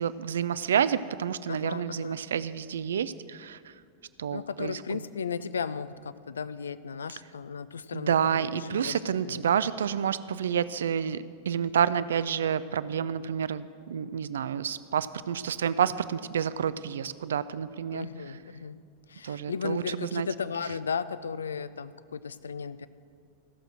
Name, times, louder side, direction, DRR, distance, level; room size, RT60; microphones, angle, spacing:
voice 1, 0.0-3.6 4.2-4.8 7.9-18.1 19.2-20.3, right 8 dB, 65° right, 15 dB, 0.3 m, -29 dB
voice 2, 1.5-2.2 4.3-9.4 17.9-18.8 19.1-22.9, left 6 dB, 70° left, 15 dB, 0.4 m, -35 dB
15.5 x 6.4 x 6.1 m, 2.2 s
figure-of-eight pair, 90°, 0 cm